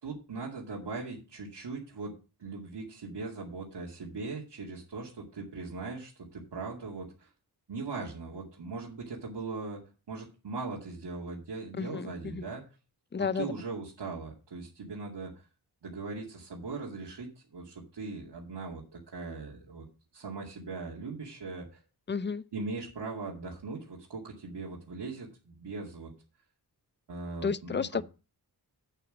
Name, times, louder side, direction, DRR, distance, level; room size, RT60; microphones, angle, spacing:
voice 1, 0.0-2.1 2.4-7.3 7.7-9.8 10.1-12.6 13.2-15.5 15.8-19.9 20.1-21.8 22.5-26.1 27.1-28.0, right 3 dB, 90° right, 2.4 m, -40 dB
voice 2, 11.7-12.5 13.1-13.5 22.1-22.4 27.4-28.0, left 5 dB, 30° left, 0.5 m, -32 dB
8.2 x 8.2 x 5.0 m
wide cardioid pair, 100°, 40 cm